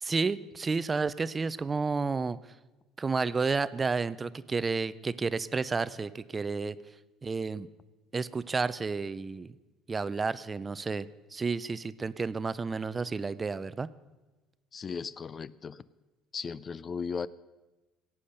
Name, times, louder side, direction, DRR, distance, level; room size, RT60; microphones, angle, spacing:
voice 1, 0.0-2.4 3.0-6.8 7.2-7.7 8.1-9.5 9.9-13.9, right 4 dB, 25° right, 16 dB, 0.5 m, -31 dB
voice 2, 14.7-15.8 16.3-17.3, left 5 dB, 35° left, 18 dB, 0.4 m, -36 dB
17.0 x 8.5 x 6.5 m, 1.1 s
cardioid pair, 105°, 0 cm